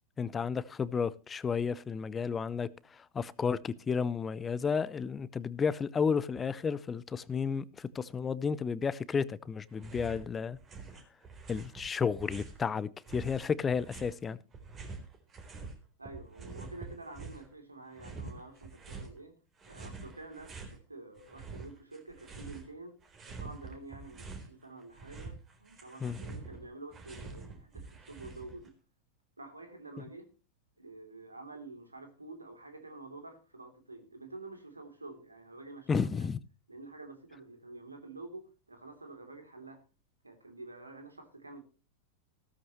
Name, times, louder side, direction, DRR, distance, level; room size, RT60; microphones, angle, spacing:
voice 1, 0.2-10.6 11.5-14.4 26.0-26.2 35.9-36.4, left 6 dB, 20° left, 0.7 m, -32 dB
sound 1, 9.7-10.3 10.5-12.6 13.1-15.8 16.0-17.5 17.9-19.1 19.6-20.8 21.2-22.7 23.0-24.5 24.8-28.7, right 4 dB, 25° right, 3.8 m, -46 dB
voice 2, 16.0-19.4 19.7-23.0 23.3-28.7 29.4-30.3 30.8-36.3 36.7-39.8 40.2-41.6, right 2 dB, 80° right, 3.2 m, -48 dB
15.5 x 13.5 x 3.1 m
figure-of-eight pair, 90°, 0 cm